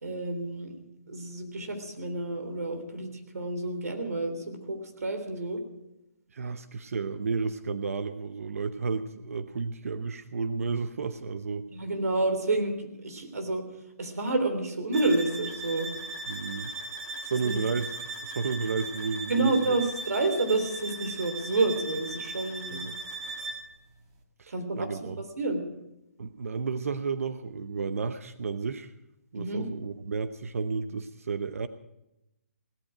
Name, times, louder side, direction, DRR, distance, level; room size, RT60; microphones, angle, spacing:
voice 1, 0.0-0.7 1.1-5.6 11.7-13.6 14.0-15.9 17.3-17.6 19.3-22.8 24.5-25.6 29.3-29.6, right 2 dB, 80° right, 6 dB, 3.5 m, -29 dB
voice 2, 6.3-11.7 16.3-16.7 17.2-17.9 18.2-19.8 22.7-23.0 24.4-25.2 26.2-28.9 29.3-31.7, right 5 dB, 65° right, 11 dB, 0.8 m, -32 dB
sound 1, 14.9-23.7, right 3 dB, 25° right, 1.8 m, -38 dB
17.0 x 13.5 x 5.0 m, 0.89 s
hypercardioid pair, 170°, 8 cm